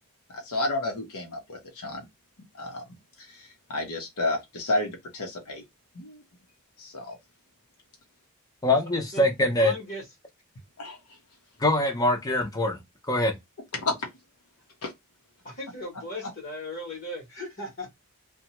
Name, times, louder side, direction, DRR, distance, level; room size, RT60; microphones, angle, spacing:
voice 1, 0.3-2.1 2.6-2.9 3.2-5.6 5.9-6.2 6.8-7.2 10.8-11.0 13.7-13.9 14.8-14.9, left 2 dB, 75° left, 0.8 m, -31 dB
voice 2, 8.6-9.7 11.6-12.8 13.1-13.4, left 1 dB, 15° left, 0.6 m, -23 dB
voice 3, 9.6-10.1 15.4-17.9, left 1 dB, 45° left, 1.0 m, -37 dB
2.7 x 2.2 x 2.9 m
head